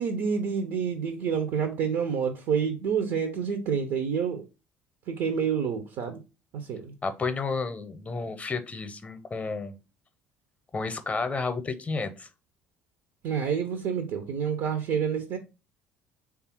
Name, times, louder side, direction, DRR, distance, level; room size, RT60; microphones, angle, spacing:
voice 1, 0.0-4.4 5.1-6.2 6.5-6.9 13.2-15.4, right 6 dB, 60° right, 0.5 m, -28 dB
voice 2, 7.0-9.8 10.7-12.3, left 4 dB, 25° left, 0.6 m, -31 dB
3.3 x 2.4 x 4.3 m
hypercardioid pair, 60°, 6 cm